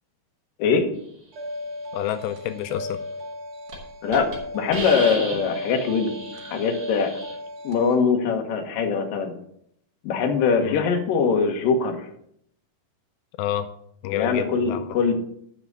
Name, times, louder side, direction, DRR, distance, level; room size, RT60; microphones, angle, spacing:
sound 1, 1.3-8.0, left 1 dB, 80° right, 1.4 m, -36 dB
voice 1, 1.9-3.0 10.6-10.8 13.4-13.7 14.0-14.9, left 12 dB, 85° left, 9 dB, 2.8 m, -28 dB
Hiss, 3.1-3.3 3.7-3.8 4.1-4.3 4.7-7.3, right 2 dB, 35° right, 3.4 m, -34 dB
voice 2, 4.5-6.1 6.5-7.1 7.6-9.3 10.0-12.0 14.2-15.1, left 5 dB, 65° left, 3 dB, 2.8 m, -22 dB
11.0 x 5.9 x 6.6 m, 0.70 s
omnidirectional pair, 4.8 m